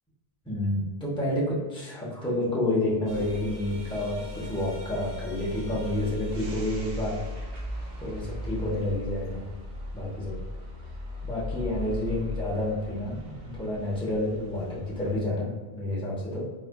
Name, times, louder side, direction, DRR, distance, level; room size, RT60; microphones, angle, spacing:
voice 1, 0.4-7.2 8.0-9.4 9.9-10.4 11.2-16.5, left 1 dB, 5° left, -7 dB, 0.8 m, -29 dB
sound 1, 3.1-15.2, left 1 dB, 85° right, 0.9 m, -38 dB
4.2 x 2.3 x 2.2 m, 1.3 s
omnidirectional pair, 1.1 m